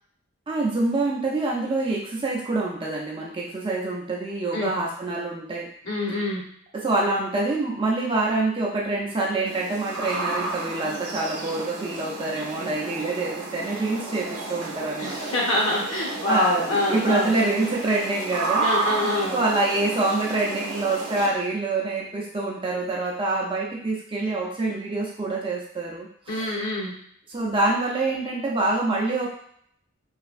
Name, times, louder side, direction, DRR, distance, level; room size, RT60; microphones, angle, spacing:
voice 1, 0.5-5.7 6.7-15.3 16.3-26.5 27.3-29.3, right 2 dB, 25° right, -3 dB, 0.4 m, -26 dB
voice 2, 5.8-6.4 15.0-17.3 18.6-19.4 26.3-26.9, left 1 dB, 60° left, -3 dB, 1.0 m, -25 dB
sound 1, 9.5-21.3, right 3 dB, 75° right, 0.6 m, -32 dB
3.2 x 2.8 x 2.5 m, 0.66 s
head